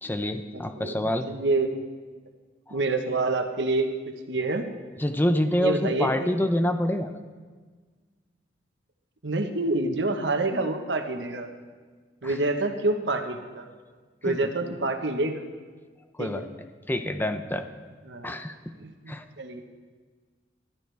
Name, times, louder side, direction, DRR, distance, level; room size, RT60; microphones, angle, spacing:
voice 1, 0.0-1.3 2.7-2.8 5.0-7.1 12.2-12.4 14.3-14.4 16.2-16.5 16.9-17.7 18.2-18.6 19.1-19.3, equal, 10° left, 8 dB, 0.7 m, -26 dB
voice 2, 0.5-1.7 2.7-4.6 5.6-6.4 9.2-11.5 12.2-13.7 14.2-15.4 16.2-16.5 18.1-18.3 18.8-19.6, right 2 dB, 80° right, 6 dB, 1.3 m, -27 dB
20.0 x 13.0 x 3.5 m, 1.5 s
head